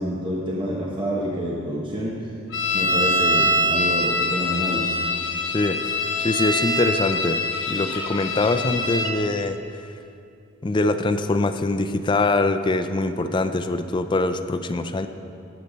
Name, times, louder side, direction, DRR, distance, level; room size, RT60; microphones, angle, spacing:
voice 1, 0.0-2.3 2.7-4.8, equal, 25° right, -4 dB, 1.1 m, -28 dB
sound 1, 2.5-9.1, left 1 dB, 65° left, 1.7 m, -24 dB
voice 2, 5.5-5.9 6.2-7.4 7.7-9.6 10.6-15.1, left 2 dB, 20° left, 9 dB, 0.4 m, -23 dB
18.0 x 6.7 x 4.0 m, 2.8 s
head